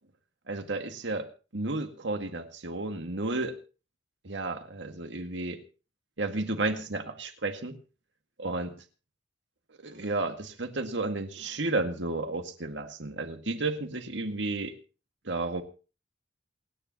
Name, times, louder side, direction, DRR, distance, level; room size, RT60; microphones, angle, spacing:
voice 1, 0.5-1.3 1.5-3.6 4.2-5.6 6.2-7.8 8.4-8.7 9.8-14.7 15.3-15.6, right 2 dB, 70° right, 6 dB, 2.0 m, -32 dB
28.0 x 10.0 x 2.9 m, 0.35 s
head